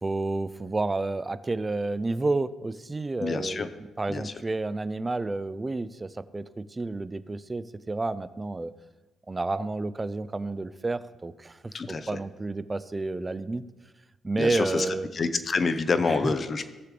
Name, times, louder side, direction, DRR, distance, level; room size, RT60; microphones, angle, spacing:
voice 1, 0.0-3.6 4.0-8.7 9.3-13.6 14.2-15.1 16.0-16.3, right 3 dB, 20° right, 15 dB, 0.5 m, -30 dB
voice 2, 3.2-3.7 4.1-4.3 11.7-12.1 14.4-16.7, left 4 dB, 40° left, 10 dB, 0.9 m, -27 dB
18.0 x 6.7 x 3.3 m, 1.2 s
cardioid pair, 90°, 0 cm